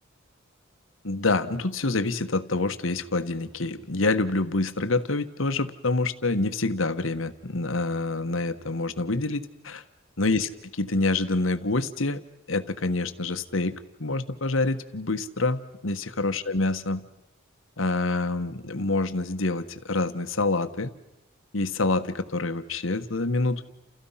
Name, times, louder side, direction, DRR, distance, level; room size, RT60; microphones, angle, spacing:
voice 1, 1.0-9.8 10.2-10.5 10.8-12.2 12.5-13.7 14.0-17.0 17.8-20.9 21.5-23.7, left 2 dB, 75° left, 10 dB, 1.4 m, -26 dB
30.0 x 29.0 x 5.8 m, 0.90 s
head